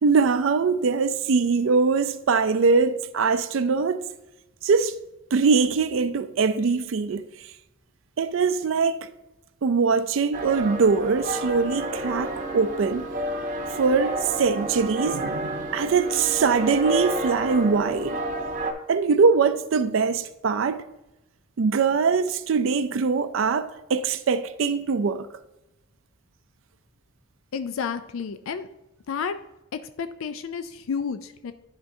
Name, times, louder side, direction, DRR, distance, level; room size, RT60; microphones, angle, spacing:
voice 1, 0.0-4.0 4.6-5.0 5.3-7.3 8.2-9.1 9.6-13.1 13.8-18.2 18.9-20.8 21.6-25.3, right 5 dB, 70° right, 0.4 m, -22 dB
sound 1, 10.3-18.7, right 1 dB, 40° right, 0.8 m, -30 dB
voice 2, 27.5-28.7 29.1-29.4 29.7-31.5, left 6 dB, 80° left, 0.4 m, -31 dB
10.0 x 5.9 x 2.7 m
head